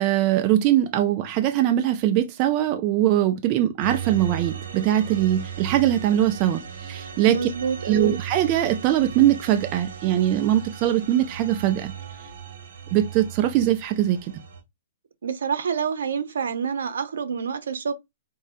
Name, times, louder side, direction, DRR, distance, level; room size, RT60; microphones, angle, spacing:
voice 1, 0.0-7.5 7.8-11.9 12.9-14.3, right 12 dB, 25° right, 0.3 m, -21 dB
sound 1, 3.8-14.6, right 8 dB, 60° right, 1.6 m, -37 dB
voice 2, 7.3-8.2 15.2-17.9, right 6 dB, 80° right, 0.8 m, -27 dB
5.1 x 2.1 x 2.6 m
hypercardioid pair, 170°, 0 cm